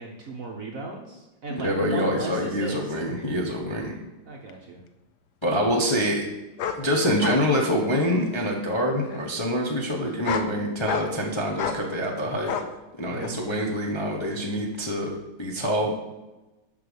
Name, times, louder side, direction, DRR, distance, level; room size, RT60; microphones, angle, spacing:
voice 1, 0.0-2.9 4.3-4.8 13.1-13.4, right 2 dB, 50° right, 1 dB, 1.1 m, -36 dB
voice 2, 1.5-4.0 5.4-6.3 6.7-12.5 12.9-15.9, equal, 20° left, -1 dB, 0.7 m, -26 dB
sound 1, 4.5-4.6 6.6-6.8 7.2-7.4 7.8-8.4 9.1-9.2 10.1-10.5 10.9-11.2 11.6-11.8 12.5-12.7 13.2-13.3, left 7 dB, 65° left, 1.1 m, -30 dB
7.3 x 5.7 x 6.9 m, 1.0 s
omnidirectional pair, 2.3 m